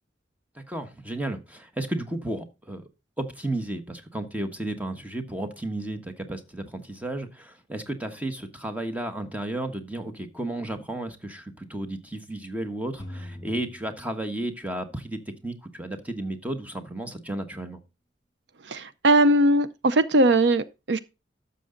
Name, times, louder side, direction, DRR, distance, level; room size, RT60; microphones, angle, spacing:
voice 1, 0.5-2.8 3.2-17.8, right 1 dB, 10° right, 1.2 m, -33 dB
sound 1, 13.0-15.2, left 1 dB, 20° left, 4.4 m, -43 dB
voice 2, 18.7-21.0, right 1 dB, 65° right, 0.6 m, -20 dB
12.5 x 6.9 x 3.8 m
head